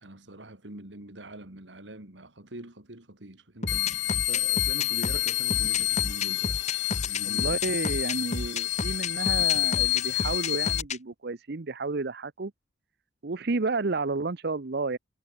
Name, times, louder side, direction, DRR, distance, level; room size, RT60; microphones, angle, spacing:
voice 1, 0.0-6.6 7.0-7.5, right 1 dB, 85° right, 3.5 m, -43 dB
sound 1, 3.6-11.0, left 3 dB, 40° left, 1.5 m, -32 dB
sound 2, 3.7-10.8, left 16 dB, 90° left, 1.7 m, -28 dB
voice 2, 7.2-12.5 13.2-15.0, right 3 dB, 60° right, 0.8 m, -31 dB
head